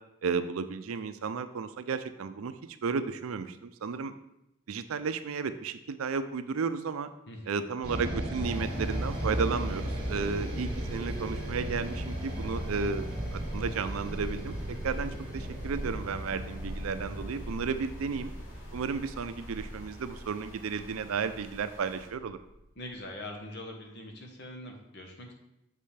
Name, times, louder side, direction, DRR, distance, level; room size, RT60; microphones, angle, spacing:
voice 1, 0.2-2.5 2.8-4.1 4.7-7.1 7.5-13.0 13.3-18.3 18.7-22.4, right 5 dB, 85° right, 11 dB, 0.4 m, -33 dB
voice 2, 7.3-7.7 22.8-25.3, left 1 dB, 55° left, 2 dB, 1.1 m, -43 dB
sound 1, 7.8-22.1, equal, 50° right, 2.0 m, -36 dB
sound 2, 8.5-22.1, left 1 dB, 85° left, 2.4 m, -54 dB
6.6 x 5.4 x 3.3 m, 0.86 s
head